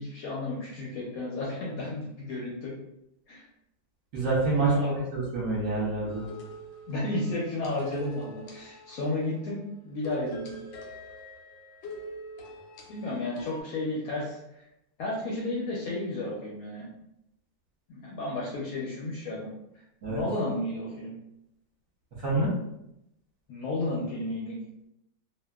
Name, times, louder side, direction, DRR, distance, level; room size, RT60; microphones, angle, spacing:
voice 1, 0.0-2.7 3.3-3.4 4.6-4.9 6.9-10.6 12.9-14.6 15.0-16.9 17.9-19.5 20.1-21.1 23.5-24.6, left 2 dB, 70° left, -5 dB, 0.9 m, -32 dB
voice 2, 4.1-6.3 20.0-20.2 22.2-22.5, right 2 dB, 60° right, -6 dB, 1.0 m, -27 dB
sound 1, 6.1-9.3 10.0-13.6, left 1 dB, 90° left, 1.3 m, -43 dB
2.7 x 2.3 x 2.2 m, 0.83 s
omnidirectional pair, 1.9 m